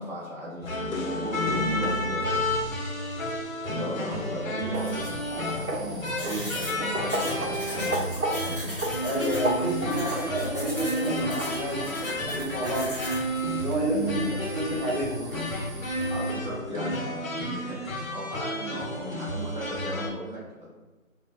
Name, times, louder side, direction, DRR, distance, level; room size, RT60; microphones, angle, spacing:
voice 1, 0.0-2.4 3.7-8.0 8.3-8.7 13.9-14.3 16.1-20.7, equal, 35° right, -9 dB, 0.8 m, -36 dB
sound 1, 0.6-20.1, left 1 dB, 70° left, 0.8 m, -31 dB
sound 2, 4.7-16.3, right 1 dB, 85° right, 0.7 m, -35 dB
sound 3, 6.2-13.3, equal, 40° left, 0.6 m, -38 dB
voice 2, 9.0-12.9 13.5-15.4, right 1 dB, 60° right, -5 dB, 1.2 m, -30 dB
2.2 x 2.2 x 2.6 m, 1.2 s
figure-of-eight pair, 170°, 42 cm